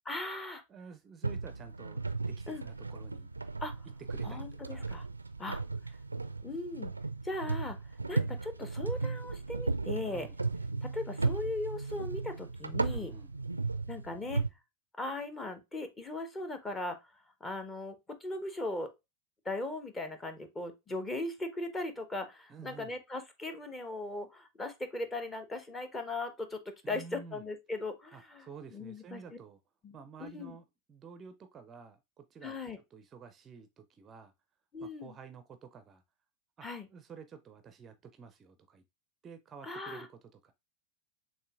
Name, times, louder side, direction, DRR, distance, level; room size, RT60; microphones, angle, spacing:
voice 1, 0.1-0.6 2.5-2.6 3.6-3.7 4.2-5.1 5.4-5.6 6.4-6.9 7.2-7.8 8.1-10.3 10.8-13.1 13.9-14.4 15.0-17.0 17.4-18.9 19.4-29.2 29.8-29.9 30.2-30.6 32.4-32.8 34.7-35.1 36.6-36.9 39.6-40.1, left 2 dB, 15° left, 0.8 m, -38 dB
voice 2, 0.7-3.3 4.1-4.9 10.1-10.4 12.8-13.3 22.5-23.0 26.8-27.5 28.1-29.6 29.9-32.6 32.9-34.3 34.8-36.0 36.6-38.8 39.2-40.5, right 6 dB, 25° right, 0.5 m, -51 dB
sound 1, 1.2-14.5, right 3 dB, 80° right, 0.4 m, -35 dB
6.6 x 2.6 x 2.3 m
figure-of-eight pair, 90°, 0 cm